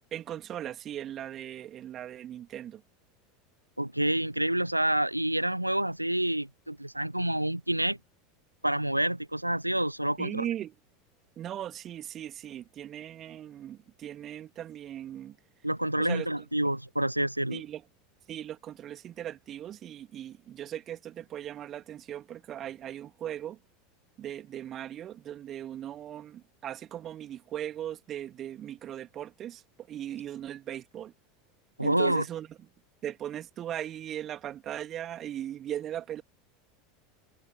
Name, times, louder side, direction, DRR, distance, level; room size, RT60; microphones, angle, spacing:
voice 1, 0.1-2.8 10.2-10.7 11.4-15.4 16.0-16.3 17.5-17.8 18.3-23.6 24.2-31.1 31.8-32.5 33.0-36.2, right 11 dB, 35° right, 2.9 m, -38 dB
voice 2, 3.8-8.0 8.6-10.4 15.6-17.6 31.8-32.2, right 1 dB, 90° right, 0.6 m, -28 dB
figure-of-eight pair, 80°, 0 cm